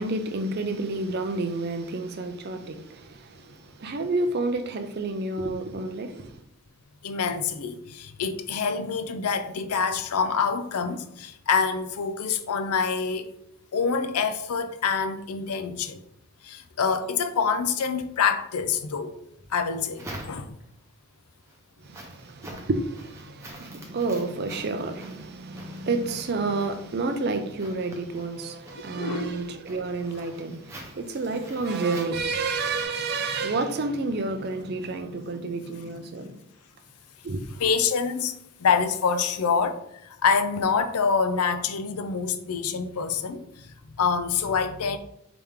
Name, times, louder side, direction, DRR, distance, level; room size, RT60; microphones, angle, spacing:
voice 1, 0.0-6.4 21.8-36.3 37.2-37.4, right 3 dB, 45° right, 0.5 m, -30 dB
voice 2, 7.0-13.3 13.7-16.0 16.4-19.2 19.5-20.6 28.7-29.3 37.6-38.3 38.6-45.0, left 5 dB, 90° left, 0.5 m, -26 dB
sound 1, 19.4-20.8 21.3-32.9, right 1 dB, 10° right, 0.8 m, -46 dB
4.9 x 3.0 x 3.6 m
head